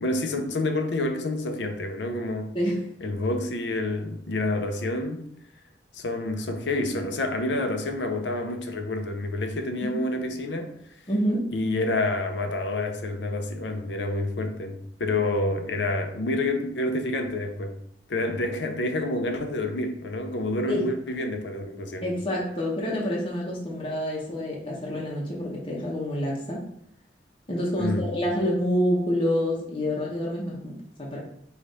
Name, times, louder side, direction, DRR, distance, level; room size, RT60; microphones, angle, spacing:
voice 1, 0.0-2.5 3.0-5.2 5.9-10.7 11.5-17.8 18.1-22.1 27.8-28.1, left 2 dB, 80° left, 0.6 m, -28 dB
voice 2, 11.1-11.5 20.7-20.9 22.0-26.6 27.5-31.2, equal, 30° left, 0.8 m, -27 dB
5.0 x 2.4 x 4.1 m
head